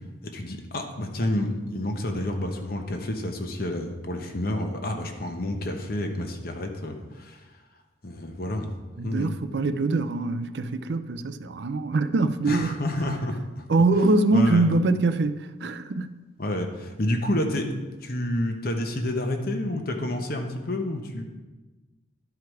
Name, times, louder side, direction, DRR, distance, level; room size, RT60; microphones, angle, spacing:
voice 1, 0.2-7.5 8.0-8.7 9.0-9.3 12.5-13.4 14.3-14.7 16.4-17.7 18.0-21.2, left 1 dB, 50° left, 0.9 m, -29 dB
voice 2, 9.0-12.8 13.7-16.2, right 2 dB, 60° right, 0.4 m, -23 dB
12.0 x 4.7 x 4.7 m
head